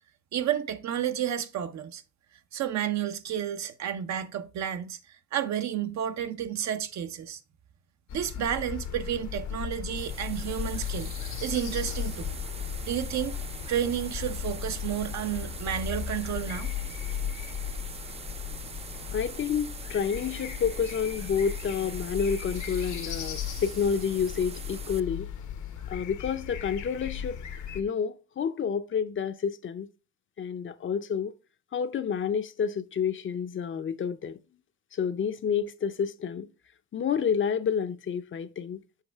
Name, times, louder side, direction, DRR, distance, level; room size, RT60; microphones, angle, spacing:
voice 1, 0.3-2.0 2.5-5.0 5.3-7.4 8.1-11.1 11.4-12.4 12.9-13.3 13.7-16.7, right 10 dB, 65° right, 0.7 m, -31 dB
sound 1, 8.1-27.8, left 8 dB, 75° left, 0.9 m, -36 dB
sound 2, 10.0-25.0, right 6 dB, 20° right, 0.3 m, -43 dB
voice 2, 19.1-25.3 25.9-27.4 27.7-29.9 30.4-31.3 31.7-34.4 34.9-36.5 36.9-38.8, left 7 dB, 40° left, 0.5 m, -29 dB
7.4 x 4.8 x 3.4 m
cardioid pair, 90°, 30 cm